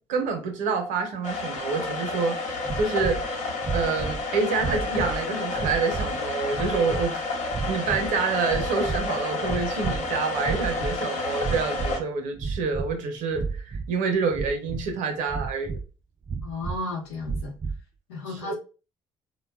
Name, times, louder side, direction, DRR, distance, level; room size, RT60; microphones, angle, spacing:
voice 1, 0.1-2.4 2.8-3.2 3.7-7.2 7.7-15.8 18.4-18.5, right 4 dB, 70° right, 5 dB, 0.7 m, -27 dB
sound 1, 1.2-12.0, left 3 dB, 60° left, 0.8 m, -30 dB
sound 2, 2.6-3.2 3.6-4.2 4.6-5.2 5.5-6.1 6.5-7.1 7.5-8.2 8.4-9.1 9.4-10.1 10.4-11.0 11.4-12.0 12.3-12.9 13.3-13.9 14.3-14.9 15.3-15.9 16.3-16.8 17.2-17.8, right 4 dB, 30° right, 0.5 m, -32 dB
voice 2, 16.4-17.5 18.1-18.5, left 2 dB, 90° left, -1 dB, 0.9 m, -33 dB
3.5 x 2.2 x 2.2 m, 0.34 s
hypercardioid pair, 55°, 14 cm